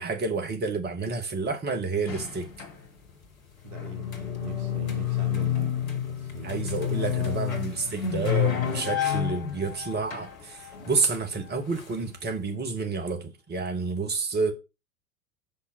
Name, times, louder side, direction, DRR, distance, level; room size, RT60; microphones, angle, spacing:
voice 1, 0.0-2.5 6.4-14.5, right 4 dB, 25° right, 1.9 m, -29 dB
sound 1, 2.1-3.1 3.4-12.3, left 10 dB, 75° left, 1.7 m, -30 dB
voice 2, 3.6-6.6 7.0-7.4 14.0-14.1, right 10 dB, 50° right, 1.3 m, -43 dB
5.9 x 5.6 x 5.9 m
figure-of-eight pair, 90°, 41 cm